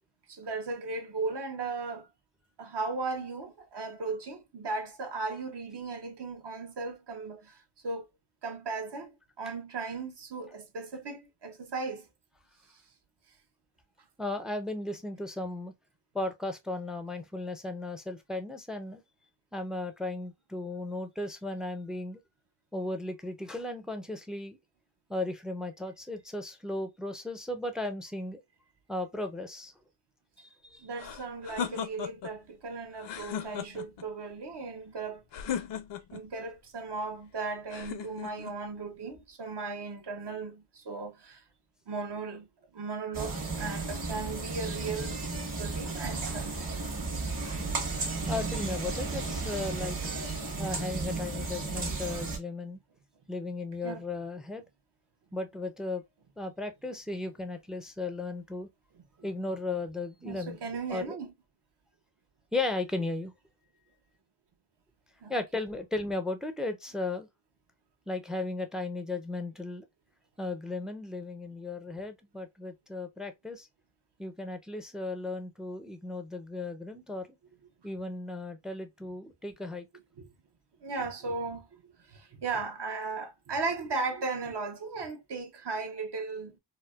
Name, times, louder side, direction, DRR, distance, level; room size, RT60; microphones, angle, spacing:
voice 1, 0.3-2.1 2.6-8.1 8.4-12.1 30.8-35.2 36.1-41.4 41.9-42.5 42.7-46.7 47.5-47.6 48.1-48.2 53.8-54.0 59.2-59.3 60.2-61.3 65.2-65.4 80.2-80.3 80.8-81.7 82.1-86.6, right 3 dB, 60° right, 0.9 m, -36 dB
voice 2, 14.2-15.7 16.1-19.0 19.5-22.2 22.7-24.6 25.1-28.4 28.9-29.7 30.4-30.9 48.3-50.0 50.6-52.8 53.3-54.6 55.3-56.0 56.4-58.7 59.2-60.6 60.9-61.2 62.5-63.3 65.3-67.3 68.1-69.8 70.4-73.7 74.2-77.4 77.8-79.9, left 2 dB, ahead, 0.4 m, -35 dB
sound 1, 31.0-32.3 33.0-34.0 35.3-36.2 37.7-38.6, left 8 dB, 60° left, 0.6 m, -36 dB
sound 2, 43.1-52.4, right 3 dB, 45° right, 1.2 m, -34 dB
4.2 x 2.1 x 2.2 m
wide cardioid pair, 125°, 48 cm